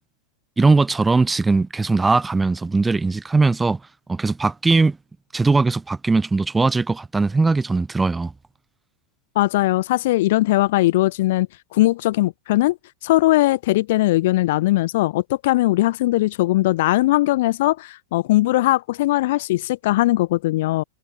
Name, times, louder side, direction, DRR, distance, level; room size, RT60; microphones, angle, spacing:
voice 1, 0.6-3.8 4.1-5.0 5.3-8.3, right 3 dB, 5° right, 0.6 m, -19 dB
voice 2, 9.4-11.5 11.7-12.8 13.0-20.8, left 17 dB, 55° left, 1.7 m, -19 dB
supercardioid pair, 155°, 0 cm